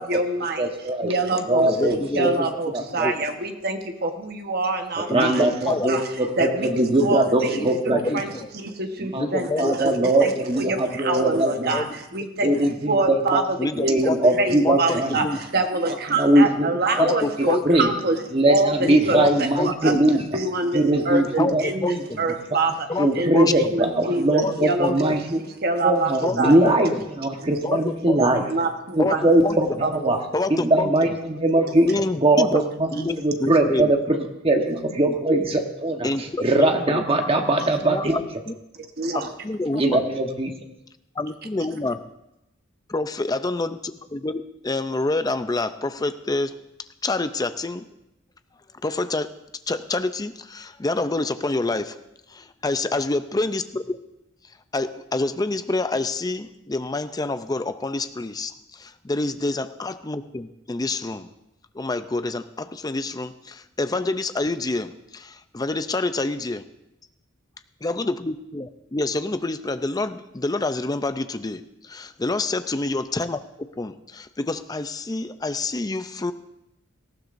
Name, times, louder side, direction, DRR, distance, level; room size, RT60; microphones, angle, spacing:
voice 1, 0.0-0.7 1.0-1.7 2.1-6.0 6.4-10.3 10.6-13.9 14.4-22.9 23.1-25.2 25.6-26.6 27.7-27.8 28.2-29.2 29.8-30.1 39.0-39.3 39.7-39.8, right 2 dB, 50° right, 5 dB, 1.2 m, -26 dB
voice 2, 0.6-1.1 1.5-2.3 2.7-3.1 5.0-8.2 9.0-9.3 9.6-11.8 12.4-13.4 13.7-15.2 16.1-16.7 17.0-17.9 18.3-20.2 20.7-21.6 23.0-25.4 25.8-28.4 28.9-30.2 30.5-31.9 32.2-38.2 39.7-40.5, right 1 dB, 30° right, 3 dB, 1.2 m, -21 dB
voice 3, 1.6-2.5 3.0-3.1 5.1-5.9 7.5-8.5 9.2-10.3 11.7-12.0 13.6-14.2 14.6-15.4 16.6-17.6 18.8-19.3 19.6-20.0 21.4-21.5 21.8-22.3 22.9-23.1 23.3-23.7 24.4-25.0 26.2-26.7 27.6-28.2 29.0-29.6 30.3-30.9 31.9-32.6 32.9-33.9 36.0-37.0 37.8-38.5 39.1-40.0 41.2-42.0 42.9-46.5 47.0-47.8 48.8-49.3 49.7-52.0 52.6-54.0 54.7-61.3 61.7-66.6 67.8-73.4 73.8-76.3, left 2 dB, 20° left, 11 dB, 0.5 m, -27 dB
18.5 x 14.5 x 2.6 m, 0.88 s
head